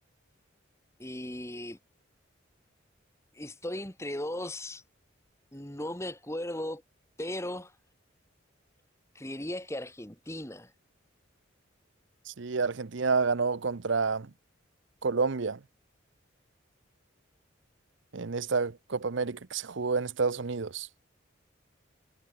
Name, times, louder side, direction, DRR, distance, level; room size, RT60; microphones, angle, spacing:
voice 1, 1.0-1.8 3.3-4.8 5.5-6.8 7.2-7.7 9.1-10.7, left 1 dB, 15° left, 2.3 m, -37 dB
voice 2, 12.4-14.3 15.0-15.6 18.1-20.9, right 4 dB, 65° right, 0.7 m, -29 dB
head